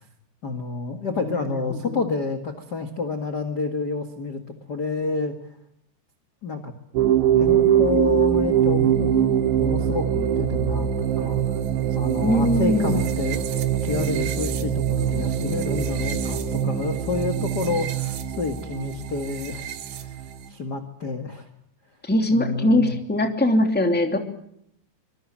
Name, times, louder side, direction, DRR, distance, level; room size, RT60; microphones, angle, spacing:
voice 1, 0.4-4.4 4.7-5.3 6.4-6.7 7.4-9.1 9.6-10.9 11.2-11.4 11.9-13.4 13.8-21.5 22.3-23.0, left 3 dB, 45° left, 6 dB, 1.3 m, -29 dB
voice 2, 1.2-2.0 12.2-13.0 22.0-24.2, left 1 dB, 5° left, 5 dB, 1.8 m, -22 dB
sound 1, 7.0-20.5, right 9 dB, 80° right, 4.0 m, -23 dB
25.5 x 23.5 x 7.4 m, 0.74 s
omnidirectional pair, 5.0 m